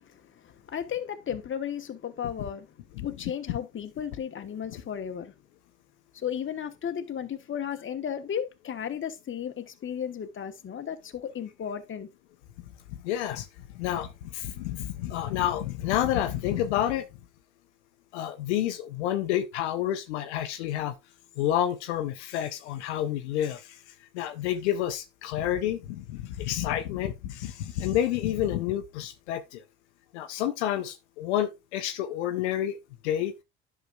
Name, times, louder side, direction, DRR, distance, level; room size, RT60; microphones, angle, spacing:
voice 1, 0.7-2.7 3.0-5.3 6.1-12.1, left 8 dB, 35° left, 1.1 m, -34 dB
voice 2, 13.0-13.5 13.7-17.1 18.1-20.9 21.4-23.6 24.1-29.6 30.1-32.8 33.0-33.3, left 11 dB, 85° left, 0.7 m, -29 dB
10.5 x 5.9 x 2.3 m
hypercardioid pair, 60°, 33 cm